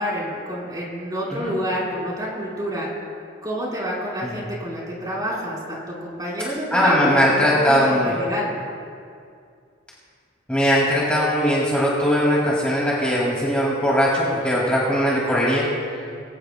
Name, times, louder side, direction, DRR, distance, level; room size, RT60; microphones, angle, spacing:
voice 1, 0.0-2.9 3.4-8.5, equal, 20° right, -5 dB, 4.2 m, -28 dB
voice 2, 6.7-8.2 10.5-15.7, equal, 5° left, -6 dB, 2.2 m, -20 dB
23.5 x 16.5 x 2.2 m, 2.3 s
head